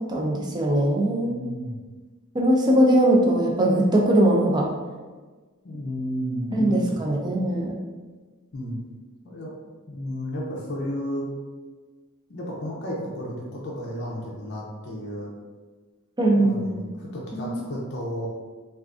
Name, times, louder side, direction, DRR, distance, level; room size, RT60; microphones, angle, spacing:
voice 1, 0.0-1.3 2.3-4.7 6.5-7.8 16.2-16.8 17.3-17.5, right 1 dB, 20° right, 0 dB, 0.4 m, -21 dB
voice 2, 1.2-1.8 5.6-7.0 8.5-8.8 9.2-11.3 12.3-15.3 16.3-18.3, equal, 50° left, -4 dB, 0.5 m, -33 dB
3.5 x 2.4 x 2.4 m, 1.4 s
head